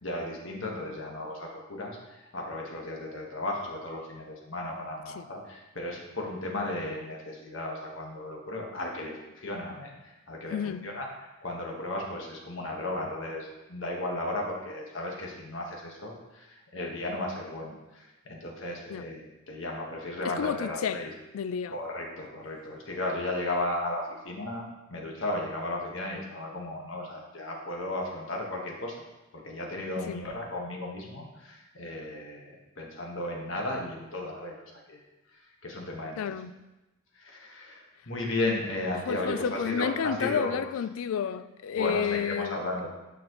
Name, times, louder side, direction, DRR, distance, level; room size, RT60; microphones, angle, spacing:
voice 1, 0.0-11.1 11.4-21.1 21.7-24.6 24.9-28.9 29.3-35.0 35.6-36.2 37.1-40.5 41.7-42.9, left 1 dB, 65° left, 1.4 m, -35 dB
voice 2, 10.5-10.9 18.9-19.1 20.2-21.0 21.3-21.8 30.1-30.3 36.2-36.7 39.1-42.6, left 7 dB, 85° left, 0.3 m, -31 dB
9.1 x 5.9 x 3.1 m
head